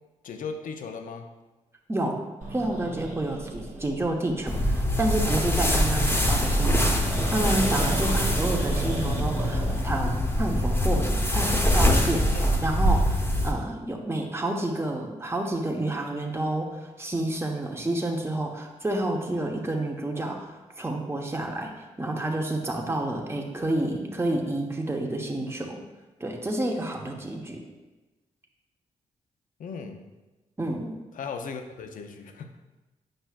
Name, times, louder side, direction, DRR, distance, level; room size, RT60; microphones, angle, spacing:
voice 1, 0.2-1.3 12.3-12.5 29.6-30.1 31.1-32.6, left 5 dB, 75° left, 5 dB, 0.6 m, -37 dB
voice 2, 1.9-2.2 2.5-21.7 22.0-25.8 26.2-27.6 30.6-30.9, right 1 dB, 20° right, 1 dB, 1.1 m, -29 dB
Growling, 2.4-12.9, right 2 dB, 70° right, 1.1 m, -34 dB
sound 1, 4.5-13.5, left 1 dB, 15° left, 1.1 m, -24 dB
7.8 x 5.6 x 2.4 m, 1.1 s
supercardioid pair, 50°, 14 cm